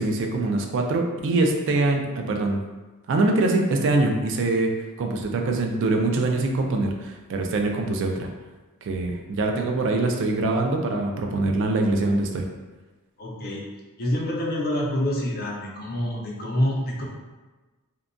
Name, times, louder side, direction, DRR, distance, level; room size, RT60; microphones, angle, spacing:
voice 1, 0.0-2.6 3.1-4.7 5.0-8.3 8.8-12.4, right 2 dB, 55° right, 3 dB, 0.3 m, -23 dB
voice 2, 13.2-13.6 14.0-17.0, left 1 dB, 45° left, -2 dB, 0.5 m, -26 dB
2.7 x 2.2 x 2.5 m, 1.2 s
head